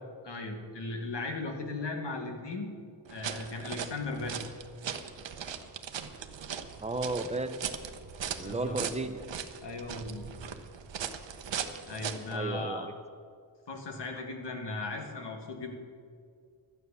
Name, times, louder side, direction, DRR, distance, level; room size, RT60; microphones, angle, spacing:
voice 1, 0.2-2.7 3.1-4.4 8.4-8.8 9.6-10.5 11.9-12.9 13.7-15.7, left 3 dB, 70° left, 3 dB, 1.8 m, -37 dB
sound 1, 3.1-12.4, right 7 dB, 80° right, 0.8 m, -39 dB
voice 2, 6.8-7.5 8.4-9.2 12.3-12.9, right 2 dB, 15° right, 8 dB, 0.6 m, -33 dB
12.5 x 9.4 x 6.8 m, 2.2 s
wide cardioid pair, 165°, 44 cm